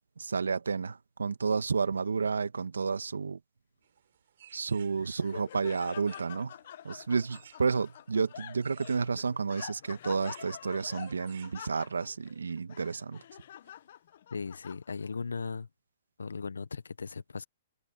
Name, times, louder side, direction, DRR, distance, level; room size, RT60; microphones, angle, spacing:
voice 1, 0.2-3.4 4.5-6.5 6.8-13.2, right 5 dB, 85° right, 1.7 m, -31 dB
sound 1, 3.8-12.1, right 9 dB, 65° right, 6.2 m, -60 dB
Laughter, 4.7-15.2, left 11 dB, 60° left, 1.2 m, -47 dB
voice 2, 14.3-15.7 16.2-17.4, left 5 dB, 85° left, 1.2 m, -37 dB
hypercardioid pair, 125°, 0 cm